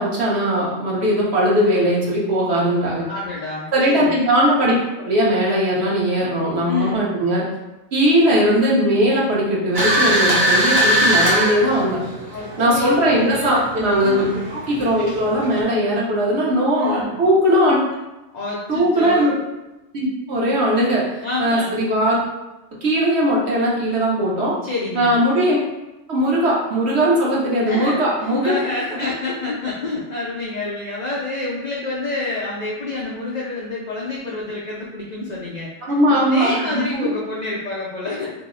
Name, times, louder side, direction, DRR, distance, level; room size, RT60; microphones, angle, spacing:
voice 1, 0.0-3.0 3.7-4.8 5.0-7.5 7.9-12.0 12.6-17.8 18.7-19.3 19.9-21.0 21.4-22.2 22.8-24.6 24.9-25.6 26.1-28.5 35.8-37.1, equal, 60° right, -5 dB, 1.0 m, -19 dB
voice 2, 3.1-4.1 6.2-6.3 6.7-7.0 12.3-12.9 13.2-13.7 14.0-14.3 16.8-17.2 18.3-19.3 21.2-21.8 24.6-25.2 27.7-35.7 36.1-38.3, left 3 dB, 80° left, -5 dB, 0.3 m, -28 dB
sound 1, 9.7-15.6, equal, 25° right, 0.6 m, -21 dB
2.7 x 2.0 x 3.6 m, 1.0 s
omnidirectional pair, 1.3 m